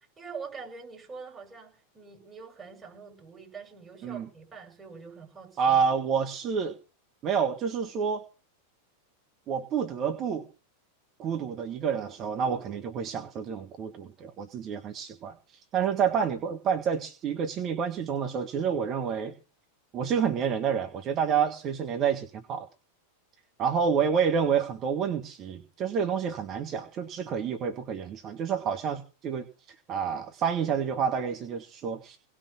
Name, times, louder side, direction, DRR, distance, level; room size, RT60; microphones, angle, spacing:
voice 1, 0.2-5.8, right 5 dB, 15° right, 0 dB, 7.3 m, -44 dB
voice 2, 5.6-6.8 7.2-8.2 9.5-10.5 11.2-19.3 19.9-22.7 23.6-32.2, right 7 dB, 30° right, 5 dB, 1.7 m, -29 dB
18.5 x 6.3 x 9.0 m, 0.35 s
figure-of-eight pair, 90°, 0 cm